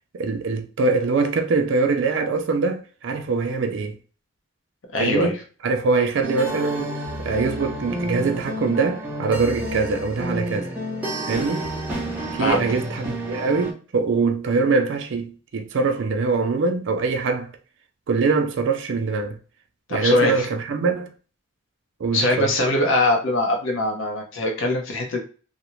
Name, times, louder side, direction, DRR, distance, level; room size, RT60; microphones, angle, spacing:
voice 1, 0.1-4.0 5.0-5.4 5.6-10.7 11.3-11.7 12.4-17.5 18.1-19.4 19.9-21.1 22.0-22.5, right 4 dB, 60° right, 0.4 m, -23 dB
voice 2, 4.9-5.3 12.4-12.6 19.9-20.5 22.1-25.2, left 2 dB, 75° left, 0.6 m, -22 dB
sound 1, 6.2-13.7, equal, 5° right, 0.6 m, -30 dB
2.4 x 2.0 x 2.9 m
head